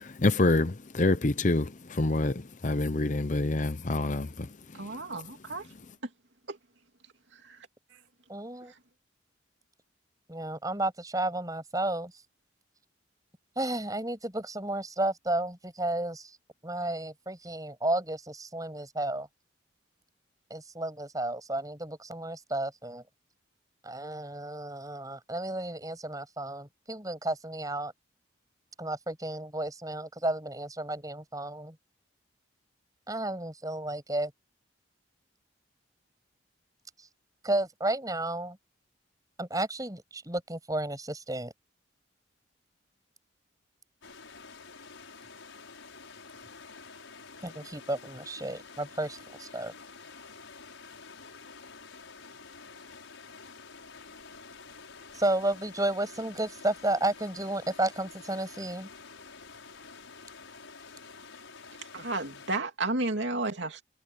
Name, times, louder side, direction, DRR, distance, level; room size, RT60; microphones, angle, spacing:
voice 1, 0.2-2.3 2.6-4.3, left 2 dB, 40° left, 0.7 m, -26 dB
voice 2, 4.7-5.7 6.5-6.6 7.4-7.6 61.9-63.8, right 2 dB, 65° right, 2.7 m, -32 dB
voice 3, 8.3-8.7 10.3-12.1 13.6-16.4 16.6-19.3 20.5-23.0 23.8-27.9 28.8-31.8 33.1-34.3 37.4-38.6 39.4-41.5 47.4-49.7 55.1-58.9, right 1 dB, 20° right, 7.0 m, -32 dB
sound 1, 44.0-62.6, left 4 dB, 80° left, 6.4 m, -49 dB
head